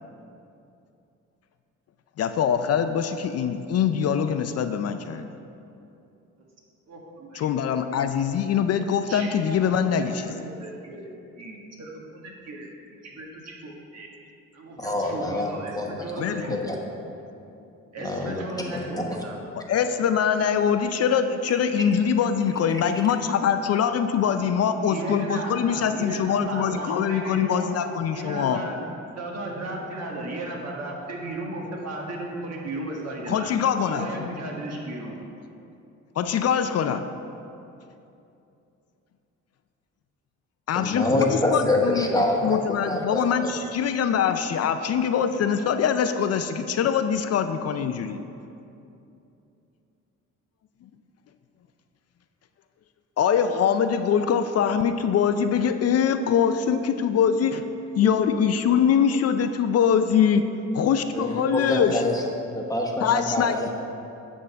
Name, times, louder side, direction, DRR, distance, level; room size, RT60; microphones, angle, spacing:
voice 1, 2.2-5.3 7.3-10.5 16.2-16.6 19.7-28.6 33.3-34.3 36.2-37.1 40.7-42.1 42.4-48.2 53.2-57.7 58.0-60.4 60.7-62.0 63.0-63.7, left 7 dB, 55° left, 9 dB, 0.5 m, -23 dB
voice 2, 6.9-7.5 8.9-12.7 13.0-14.1 14.5-16.8 17.9-19.3 24.4-27.7 28.1-33.5 33.9-35.2, right 1 dB, 60° right, -1 dB, 1.6 m, -35 dB
voice 3, 14.8-15.9 16.5-16.8 18.0-19.0 40.7-43.5 61.1-62.2 62.5-63.7, left 1 dB, 10° left, 0 dB, 1.1 m, -26 dB
9.2 x 3.7 x 6.7 m, 2.7 s
cardioid pair, 90°, 30 cm